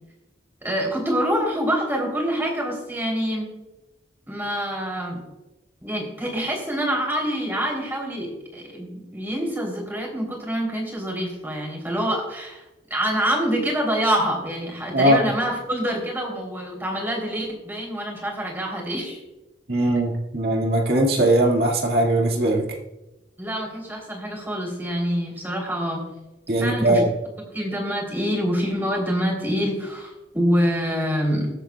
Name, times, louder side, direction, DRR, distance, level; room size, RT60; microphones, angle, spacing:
voice 1, 0.6-3.5 4.3-5.2 5.8-19.2 23.4-26.0 26.6-27.0 27.5-31.5, equal, 10° right, -1 dB, 3.2 m, -26 dB
voice 2, 19.7-22.6 26.5-27.1, right 1 dB, 55° right, -1 dB, 2.1 m, -20 dB
22.5 x 8.0 x 2.3 m, 1.0 s
head